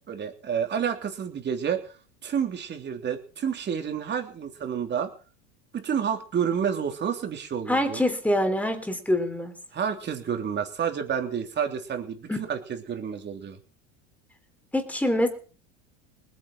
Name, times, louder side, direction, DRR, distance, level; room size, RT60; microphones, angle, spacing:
voice 1, 0.1-1.9 2.2-5.1 5.7-8.0 9.7-12.6 12.9-13.6, right 7 dB, 30° right, 5 dB, 3.3 m, -29 dB
voice 2, 7.7-9.5 12.3-12.4 14.7-15.3, left 1 dB, 5° left, 6 dB, 3.7 m, -25 dB
20.0 x 9.5 x 6.2 m, 0.40 s
supercardioid pair, 125°, 36 cm